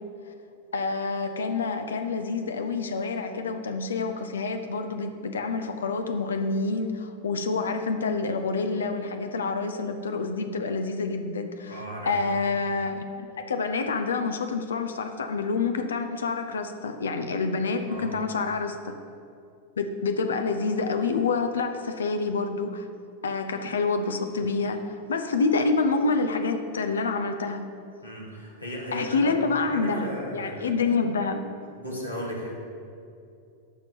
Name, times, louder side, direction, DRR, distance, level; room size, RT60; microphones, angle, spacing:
voice 1, 0.7-18.9 19.8-22.9 23.2-27.7 28.9-31.5, left 4 dB, 70° left, 7 dB, 0.7 m, -27 dB
voice 2, 11.7-12.1 17.9-18.1 28.0-29.3 29.7-30.7 31.8-32.5, equal, 90° left, -4 dB, 2.4 m, -35 dB
12.0 x 4.5 x 7.0 m, 2.5 s
figure-of-eight pair, 90°, 0 cm